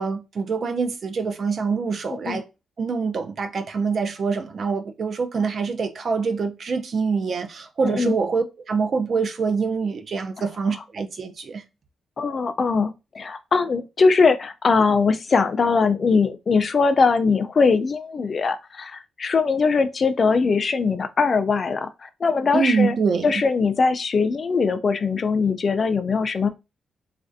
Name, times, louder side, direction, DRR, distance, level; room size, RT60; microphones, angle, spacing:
voice 1, 0.0-2.5 2.8-11.6 22.5-23.4, right 5 dB, 50° right, 0.4 m, -25 dB
voice 2, 12.2-23.0 23.2-26.5, left 4 dB, 40° left, 0.4 m, -21 dB
4.1 x 2.5 x 2.5 m
cardioid pair, 115°, 0 cm